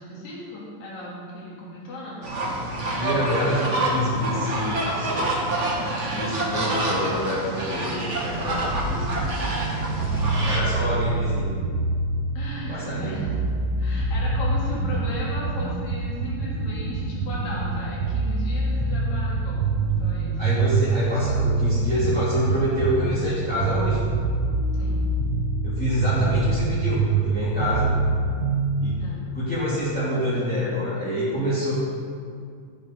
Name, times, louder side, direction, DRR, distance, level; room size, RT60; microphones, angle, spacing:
voice 1, 0.0-2.3 10.0-11.0 12.4-20.4 24.7-25.1 29.0-29.3, left 1 dB, 90° left, -5 dB, 4.3 m, -37 dB
sound 1, 2.2-10.6, right 1 dB, 50° right, 0.8 m, -27 dB
voice 2, 3.0-5.4 6.1-9.5 10.4-11.6 12.7-13.3 20.4-24.0 25.6-28.0 28.8-29.0 29.3-31.7, left 1 dB, 5° left, -11 dB, 1.9 m, -27 dB
sound 2, 9.2-29.1, right 3 dB, 75° right, 1.3 m, -25 dB
14.5 x 7.2 x 5.2 m, 2.2 s
omnidirectional pair, 3.8 m